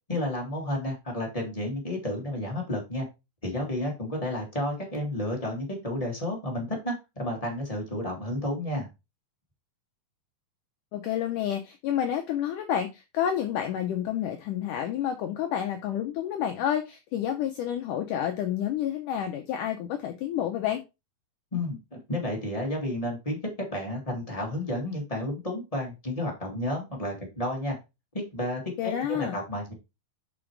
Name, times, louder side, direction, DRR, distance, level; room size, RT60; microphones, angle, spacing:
voice 1, 0.1-3.1 3.4-8.9 21.5-23.4 23.7-27.7 28.1-29.7, left 1 dB, 35° left, -1 dB, 0.5 m, -31 dB
voice 2, 10.9-20.8 28.8-29.4, left 10 dB, 80° left, 5 dB, 1.9 m, -29 dB
6.2 x 5.1 x 4.6 m, 0.25 s
omnidirectional pair, 4.5 m